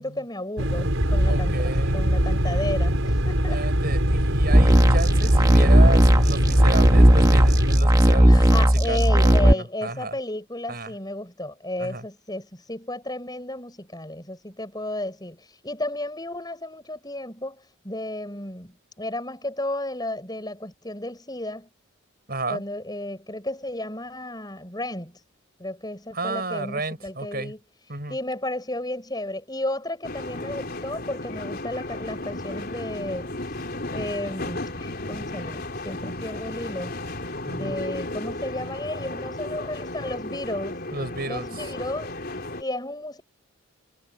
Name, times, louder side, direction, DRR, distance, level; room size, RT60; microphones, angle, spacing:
voice 1, 0.0-3.6 8.3-21.7 22.5-25.2 25.6-27.6 28.1-33.3 33.9-37.0 37.5-40.8 41.3-43.2, left 1 dB, 20° left, 7.1 m, -33 dB
sound 1, 0.6-7.8, equal, 70° right, 5.9 m, -23 dB
voice 2, 1.3-2.0 3.4-10.1 10.7-10.9 11.8-12.0 22.3-22.6 26.1-27.5 27.9-28.2 37.5-37.8 40.9-41.7, right 2 dB, 45° right, 7.4 m, -32 dB
sound 2, 4.5-9.5, equal, 20° right, 1.4 m, -16 dB
sound 3, 30.0-42.6, left 2 dB, 45° left, 4.6 m, -34 dB
head